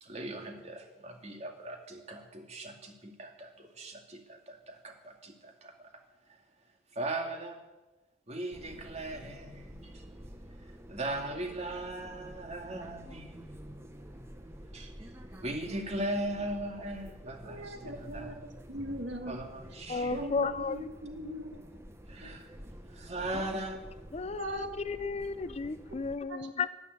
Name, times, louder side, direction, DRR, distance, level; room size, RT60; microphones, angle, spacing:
voice 1, 0.0-5.9 6.3-6.4 6.9-7.6 8.3-10.0 10.9-13.6 14.7-15.1 15.4-18.4 19.3-20.2 22.1-22.5 22.9-23.8, right 1 dB, 40° right, 2.4 m, -39 dB
sound 1, 8.5-26.2, equal, 15° right, 1.0 m, -49 dB
voice 2, 17.2-19.5 20.1-21.8 22.2-22.3 23.3-23.5 24.2-24.7 25.2-25.3 26.3-26.4, equal, 80° right, 2.0 m, -41 dB
voice 3, 19.9-20.9 24.1-26.7, left 4 dB, 35° left, 0.5 m, -33 dB
12.0 x 11.5 x 8.3 m
head